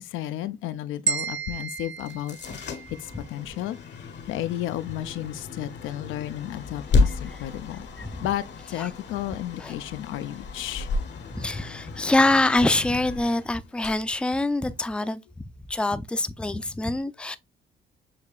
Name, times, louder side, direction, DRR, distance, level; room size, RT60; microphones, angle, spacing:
voice 1, 0.0-2.7 3.0-7.9 8.2-10.9, left 13 dB, 90° left, 0.4 m, -33 dB
sound 1, 1.1-3.2, right 5 dB, 85° right, 0.9 m, -32 dB
sound 2, 2.0-14.9, left 3 dB, 60° left, 0.9 m, -32 dB
voice 2, 11.3-15.2 15.7-17.4, left 2 dB, 5° left, 0.4 m, -25 dB
6.6 x 2.8 x 2.3 m
cardioid pair, 90°, 20 cm